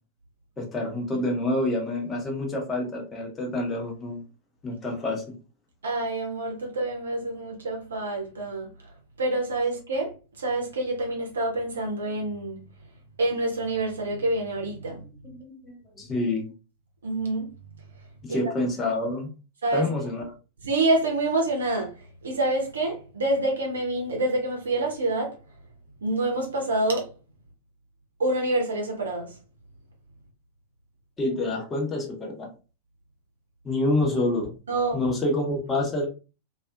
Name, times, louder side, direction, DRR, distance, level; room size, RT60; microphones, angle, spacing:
voice 1, 0.6-4.2 4.6-5.2 15.3-16.5 18.2-19.3 19.7-20.3 31.2-32.5 33.6-34.5 34.9-36.1, left 2 dB, 20° left, 0.8 m, -27 dB
voice 2, 5.8-8.7 9.2-10.1 10.4-12.6 13.2-15.0 17.0-17.5 18.3-18.4 19.6-19.9 20.6-21.9 22.2-25.3 26.0-27.1 28.2-29.3 34.7-35.0, right 2 dB, 70° right, 0.8 m, -27 dB
2.6 x 2.4 x 2.4 m
figure-of-eight pair, 90°, 0 cm